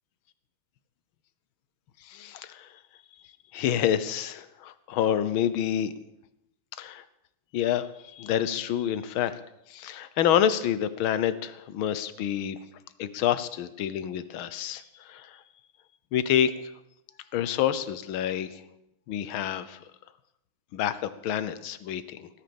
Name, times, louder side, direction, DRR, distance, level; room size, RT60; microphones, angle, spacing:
voice 1, 2.0-2.7 3.5-5.9 6.8-7.0 7.5-9.4 9.7-12.6 13.0-15.4 16.1-16.7 17.3-18.6 19.1-19.8 20.7-22.3, left 10 dB, 75° left, 14 dB, 1.7 m, -28 dB
16.5 x 10.0 x 7.0 m, 0.82 s
omnidirectional pair, 2.3 m